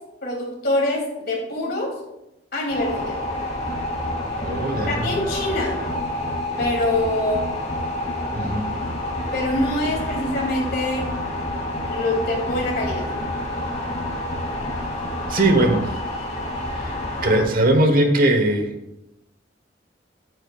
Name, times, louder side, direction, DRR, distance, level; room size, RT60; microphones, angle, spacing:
voice 1, 0.2-1.9 2.5-3.2 4.9-5.8 6.6-7.4 9.3-11.0 11.9-13.1, left 1 dB, 60° left, -2 dB, 3.0 m, -24 dB
sound 1, 2.7-17.4, left 1 dB, 40° left, 2.6 m, -28 dB
voice 2, 4.4-5.1 8.4-8.7 15.3-15.9 16.8-16.9 17.2-18.7, right 1 dB, 50° right, 5 dB, 1.2 m, -19 dB
11.5 x 9.2 x 2.4 m, 0.91 s
head